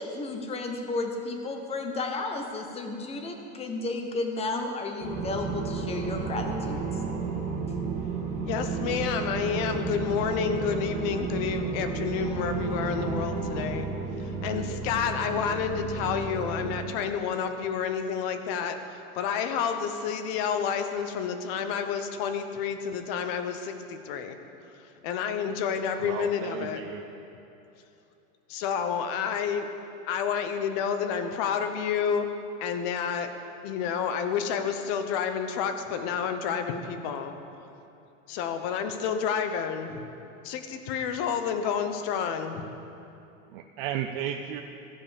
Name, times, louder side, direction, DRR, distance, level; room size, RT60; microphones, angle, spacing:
voice 1, 0.0-6.9, left 3 dB, 15° left, 4 dB, 0.8 m, -33 dB
sound 1, 5.0-16.8, right 5 dB, 15° right, 2.0 m, -32 dB
voice 2, 8.4-13.9 14.4-24.4 25.0-26.8 28.5-29.7 30.1-32.3 32.6-33.3 33.6-37.4 38.3-40.1 40.4-42.7, left 7 dB, 45° left, 7 dB, 0.9 m, -29 dB
voice 3, 26.0-27.1 43.5-44.6, right 9 dB, 50° right, 5 dB, 0.5 m, -34 dB
15.5 x 5.3 x 5.1 m, 2.9 s
supercardioid pair, 155°, 40 cm